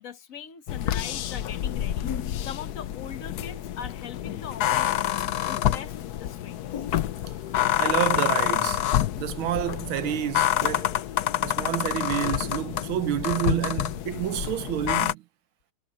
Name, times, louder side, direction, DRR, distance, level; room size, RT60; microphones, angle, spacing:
voice 1, 0.0-2.1 2.4-5.2 5.5-6.7, left 8 dB, 45° left, 1.4 m, -41 dB
sound 1, 0.7-15.1, left 12 dB, 65° left, 1.1 m, -27 dB
voice 2, 7.8-8.8 9.2-10.9 11.4-15.2, right 13 dB, 80° right, 1.7 m, -29 dB
omnidirectional pair, 2.2 m